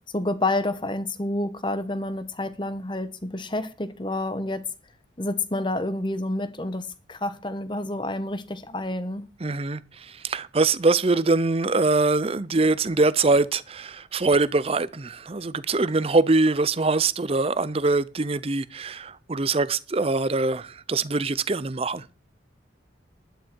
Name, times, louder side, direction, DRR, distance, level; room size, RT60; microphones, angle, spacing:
voice 1, 0.1-4.6 5.2-9.3, left 2 dB, 25° left, 1.1 m, -29 dB
voice 2, 9.4-9.8 10.2-22.0, right 3 dB, 30° right, 0.6 m, -23 dB
12.0 x 11.5 x 4.6 m
head